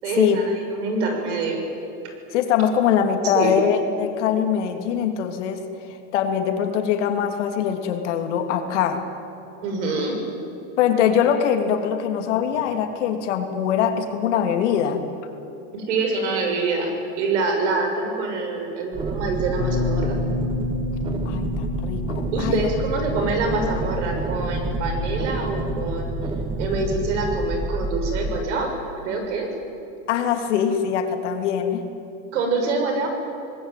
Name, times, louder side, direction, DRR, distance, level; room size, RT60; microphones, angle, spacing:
voice 1, 0.0-1.6 3.3-3.6 9.6-10.2 15.7-20.2 22.3-26.1 26.6-28.7 29.0-29.5 32.3-33.1, right 3 dB, 80° right, 4 dB, 6.9 m, -25 dB
voice 2, 2.3-5.6 6.1-9.0 10.8-15.0 21.2-22.7 30.1-31.8, left 8 dB, 85° left, 5 dB, 3.1 m, -22 dB
sound 1, 18.9-28.4, right 2 dB, 15° right, 1.0 m, -28 dB
Bass guitar, 19.6-25.8, left 4 dB, 30° left, 5.7 m, -31 dB
26.0 x 20.0 x 9.3 m, 2.9 s
supercardioid pair, 170°, 35 cm